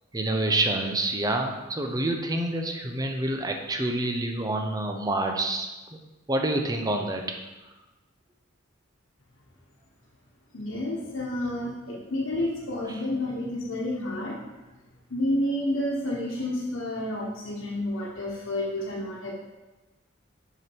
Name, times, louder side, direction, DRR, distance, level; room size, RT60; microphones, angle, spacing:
voice 1, 0.1-5.7 6.3-7.2, right 2 dB, 20° right, 3 dB, 0.7 m, -27 dB
voice 2, 10.5-14.4 15.1-19.3, left 1 dB, 85° left, -5 dB, 1.1 m, -30 dB
6.1 x 5.9 x 4.6 m, 1.1 s
head